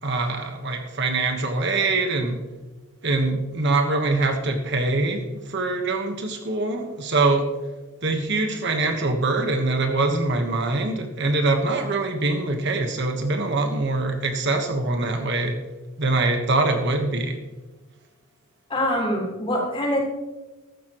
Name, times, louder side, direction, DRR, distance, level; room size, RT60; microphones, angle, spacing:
voice 1, 0.0-2.4 3.0-7.5 8.0-15.6 16.0-17.4, right 2 dB, 50° right, 4 dB, 1.3 m, -23 dB
voice 2, 18.7-20.0, equal, 25° left, -3 dB, 4.1 m, -24 dB
15.0 x 12.5 x 3.1 m, 1.1 s
head